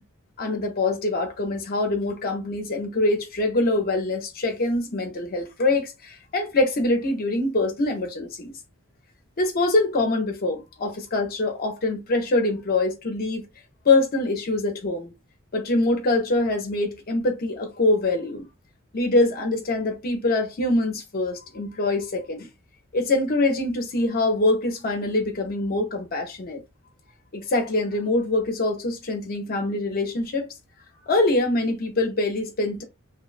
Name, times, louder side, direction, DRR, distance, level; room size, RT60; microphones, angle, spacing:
voice 1, 0.4-8.5 9.4-13.5 13.8-15.1 15.5-18.5 18.9-22.5 22.9-26.6 27.3-30.5 31.1-32.8, left 2 dB, 45° left, 0.5 m, -24 dB
2.7 x 2.1 x 2.4 m
head